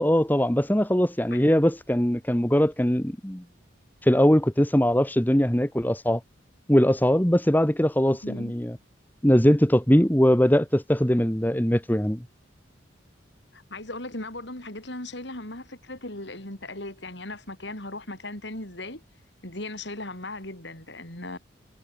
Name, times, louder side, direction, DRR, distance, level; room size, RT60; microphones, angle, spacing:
voice 1, 0.0-3.4 4.0-6.2 6.7-8.8 9.2-12.2, equal, 10° left, 1.2 m, -21 dB
voice 2, 8.2-8.5 13.5-19.0 19.4-21.4, left 2 dB, 60° left, 4.9 m, -37 dB
head